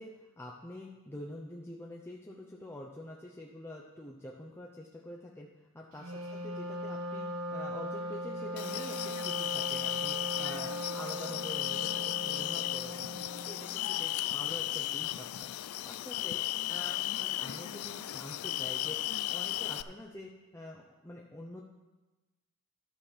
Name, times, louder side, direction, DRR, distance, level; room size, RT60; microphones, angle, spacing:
voice 1, 0.0-5.5 5.7-13.2 13.4-15.5 15.9-16.4 16.7-19.0 19.3-21.6, left 1 dB, 10° left, -1 dB, 0.6 m, -46 dB
Wind instrument woodwind instrument, 6.0-13.8, equal, 75° right, 1.1 m, -39 dB
sound 1, 8.6-19.8, left 15 dB, 85° left, 0.3 m, -35 dB
12.0 x 6.4 x 5.7 m, 1.1 s
head